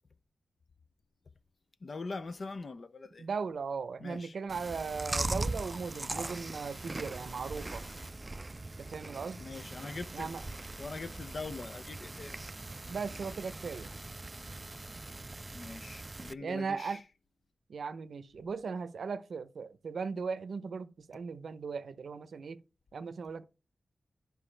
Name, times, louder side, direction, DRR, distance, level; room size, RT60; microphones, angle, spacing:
voice 1, 1.8-3.3 4.0-4.4 9.4-10.4 10.8-12.4 15.5-17.0, left 3 dB, 60° left, 0.6 m, -42 dB
voice 2, 3.2-7.9 8.8-9.4 10.1-10.4 12.9-13.9 16.4-17.0 17.7-22.6 22.9-23.4, right 5 dB, 80° right, 0.7 m, -38 dB
Chewing mastication, 4.5-16.3, right 2 dB, 30° right, 0.4 m, -40 dB
12.0 x 4.8 x 3.3 m
cardioid pair, 60°, 0 cm